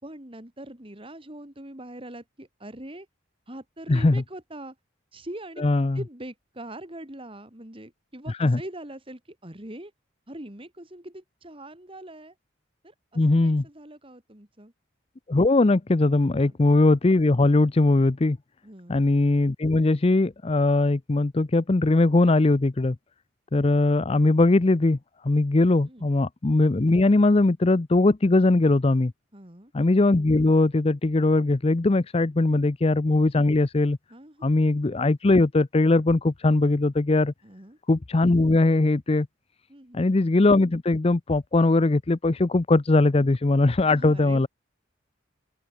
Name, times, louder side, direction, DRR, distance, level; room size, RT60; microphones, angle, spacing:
voice 1, 0.0-3.1 3.5-4.8 5.1-9.9 10.3-12.3 12.8-14.7 16.3-16.6 18.6-19.0 25.9-26.1 29.3-29.7 34.1-34.6 37.4-37.8 39.7-40.0 43.8-44.5, right 1 dB, 25° right, 2.8 m, -42 dB
voice 2, 3.9-4.2 5.6-6.0 8.4-8.6 13.2-13.6 15.3-18.4 18.9-23.0 23.5-25.0 25.2-29.1 29.7-34.0 34.4-37.3 37.9-39.3 39.9-44.5, left 2 dB, 30° left, 0.5 m, -20 dB
open air
head